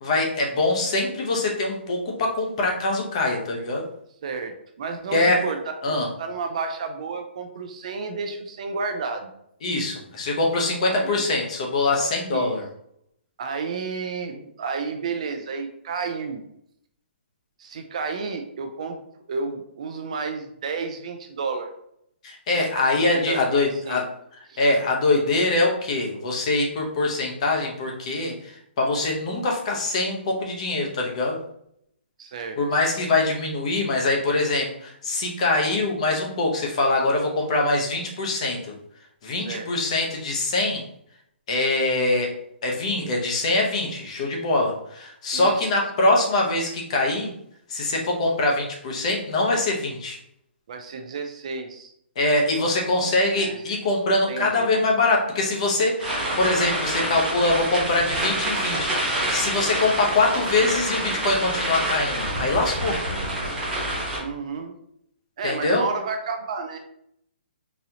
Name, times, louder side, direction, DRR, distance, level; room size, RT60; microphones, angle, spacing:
voice 1, 0.0-3.8 5.1-5.4 5.8-6.1 9.6-12.6 22.2-24.0 24.6-31.4 32.6-38.7 39.2-40.8 41.5-42.3 42.6-47.3 47.7-50.2 52.2-63.0 65.4-65.8, left 2 dB, 35° left, 0 dB, 0.7 m, -23 dB
voice 2, 4.2-5.6 5.8-9.3 10.9-11.3 12.3-12.6 13.4-16.4 17.6-19.0 19.3-21.7 23.1-24.1 24.5-24.6 32.2-32.6 39.5-39.7 44.6-44.7 45.3-45.7 50.7-51.9 53.3-53.8 54.3-54.7 64.2-64.7 65.4-66.9, right 4 dB, 35° right, 5 dB, 0.3 m, -31 dB
sound 1, 56.0-64.2, right 1 dB, 5° right, 1.0 m, -27 dB
4.0 x 2.7 x 2.8 m, 0.73 s
hypercardioid pair, 170°, 6 cm